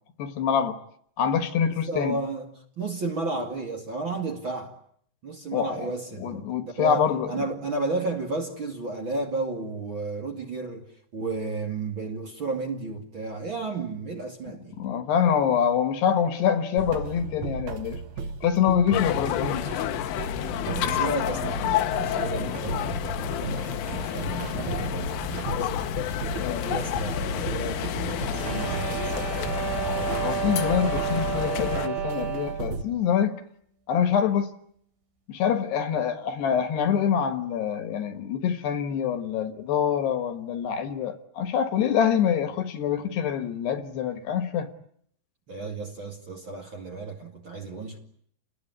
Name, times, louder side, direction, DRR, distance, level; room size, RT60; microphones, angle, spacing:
voice 1, 0.2-0.8 1.2-2.2 5.5-5.7 6.2-7.4 14.8-18.0 18.4-19.7 26.4-26.6 30.2-33.4 33.9-34.5 35.3-44.7, left 8 dB, 70° left, 3.3 m, -25 dB
voice 2, 1.6-4.8 5.2-14.8 20.5-25.9 26.6-29.3 45.5-48.0, right 3 dB, 35° right, 2.2 m, -33 dB
sound 1, 16.8-32.8, right 5 dB, 60° right, 2.1 m, -36 dB
sound 2, 18.9-31.9, left 11 dB, 90° left, 3.8 m, -29 dB
sound 3, 28.0-32.8, right 11 dB, 80° right, 6.5 m, -31 dB
29.5 x 20.5 x 9.6 m
omnidirectional pair, 5.4 m